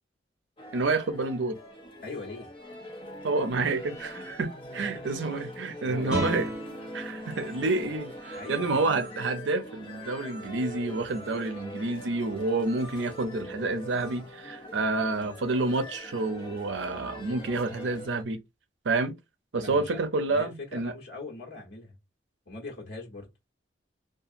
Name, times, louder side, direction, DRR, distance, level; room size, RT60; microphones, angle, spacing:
Warming up Tunning, 0.6-18.2, left 1 dB, 30° left, 0.5 m, -43 dB
voice 1, 0.7-1.6 3.2-6.5 6.9-18.4 18.8-19.2 19.5-20.9, right 3 dB, 85° right, 0.5 m, -29 dB
voice 2, 2.0-2.5 4.7-5.1 5.8-6.5 8.3-8.9 19.6-20.0 20.3-22.0 22.5-23.3, left 3 dB, 70° left, 1.1 m, -41 dB
Guitar, 6.1-11.6, equal, 5° right, 1.0 m, -39 dB
2.7 x 2.4 x 2.5 m
head